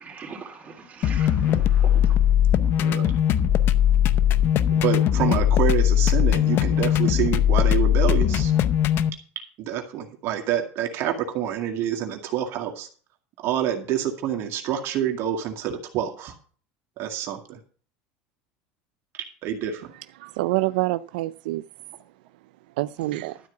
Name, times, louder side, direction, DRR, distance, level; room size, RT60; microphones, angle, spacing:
voice 1, 0.0-2.1, right 5 dB, 30° right, 3.7 m, -41 dB
sound 1, 1.0-9.1, left 10 dB, 50° left, 0.7 m, -20 dB
voice 2, 4.7-8.5 9.6-12.9 13.4-16.3 17.0-17.6 19.4-19.8, right 10 dB, 55° right, 2.0 m, -27 dB
voice 3, 19.9-21.6 22.8-23.4, right 18 dB, 85° right, 0.4 m, -27 dB
12.5 x 4.6 x 8.2 m
supercardioid pair, 115°, 5 cm